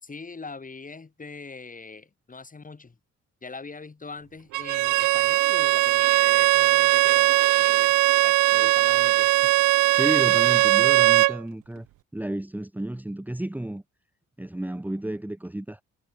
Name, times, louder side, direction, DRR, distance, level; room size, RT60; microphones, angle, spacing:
voice 1, 0.0-3.0 3.4-7.9 8.2-9.5, left 4 dB, 25° left, 5.1 m, -42 dB
Bowed string instrument, 4.5-11.4, right 19 dB, 90° right, 0.7 m, -20 dB
voice 2, 9.9-11.9 12.1-13.8 14.4-15.8, right 1 dB, 5° right, 1.4 m, -32 dB
cardioid pair, 90°, 30 cm